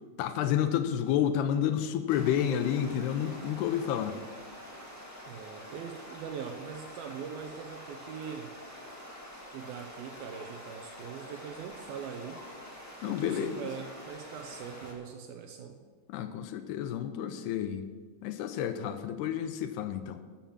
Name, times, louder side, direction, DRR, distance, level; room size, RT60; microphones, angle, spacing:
voice 1, 0.2-4.2 13.0-13.5 16.1-17.8 18.2-20.2, left 10 dB, 85° left, 10 dB, 2.7 m, -30 dB
sound 1, 2.1-14.9, equal, 10° left, 1.1 m, -47 dB
voice 2, 5.3-8.5 9.5-12.5 13.1-15.8, right 7 dB, 80° right, 6 dB, 2.2 m, -42 dB
12.5 x 7.4 x 7.2 m, 1.5 s
omnidirectional pair, 4.9 m